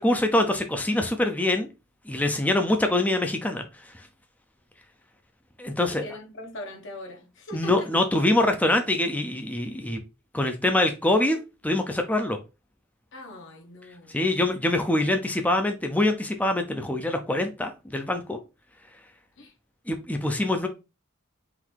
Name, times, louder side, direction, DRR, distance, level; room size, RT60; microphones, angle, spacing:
voice 1, 0.0-1.7 2.1-3.6 5.6-6.0 7.5-10.0 10.3-12.4 14.1-18.4 19.9-20.7, left 1 dB, 5° left, 0.5 m, -24 dB
voice 2, 5.9-7.9 13.1-14.2 19.4-19.5, left 1 dB, 60° left, 1.2 m, -41 dB
3.9 x 2.7 x 4.4 m
head